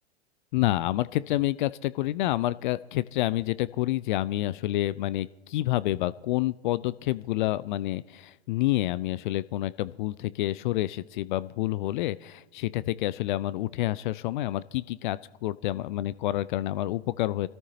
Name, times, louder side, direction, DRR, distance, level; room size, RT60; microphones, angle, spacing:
voice 1, 0.5-17.5, left 15 dB, 45° left, 18 dB, 0.4 m, -28 dB
26.0 x 13.5 x 2.8 m, 1.0 s
figure-of-eight pair, 95°, 33 cm